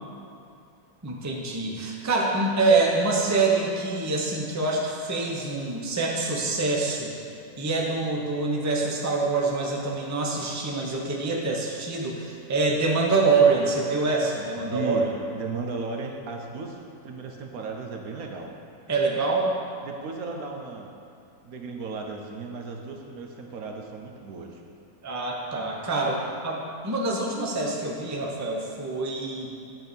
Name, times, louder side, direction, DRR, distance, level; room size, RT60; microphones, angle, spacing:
voice 1, 1.0-7.1 7.6-15.1 18.9-19.5 25.0-29.5, right 3 dB, 15° right, -1 dB, 0.7 m, -25 dB
voice 2, 14.6-15.1 15.3-16.8 17.0-18.5 19.9-20.9 21.4-24.6, right 4 dB, 70° right, 2 dB, 1.3 m, -35 dB
9.2 x 4.0 x 6.9 m, 2.6 s
omnidirectional pair, 1.6 m